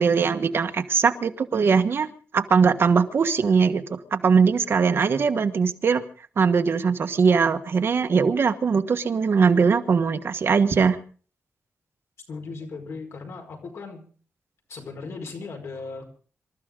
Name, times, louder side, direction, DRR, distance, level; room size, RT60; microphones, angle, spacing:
voice 1, 0.0-2.1 2.3-3.8 4.1-6.0 6.4-11.0, right 5 dB, 55° right, 8 dB, 1.4 m, -21 dB
voice 2, 12.3-14.0 14.7-16.1, left 4 dB, 65° left, 4 dB, 5.1 m, -37 dB
26.5 x 13.5 x 3.8 m, 0.40 s
wide cardioid pair, 145°, 5 cm